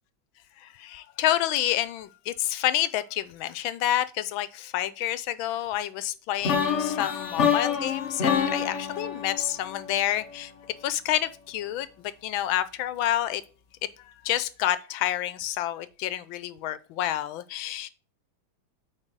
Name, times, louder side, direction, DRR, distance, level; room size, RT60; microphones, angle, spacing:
voice 1, 0.6-10.5 10.8-13.4 14.0-17.9, left 12 dB, 85° left, 1.4 m, -29 dB
sound 1, 6.4-10.4, left 7 dB, 50° left, 1.0 m, -27 dB
9.0 x 4.0 x 4.6 m
omnidirectional pair, 2.2 m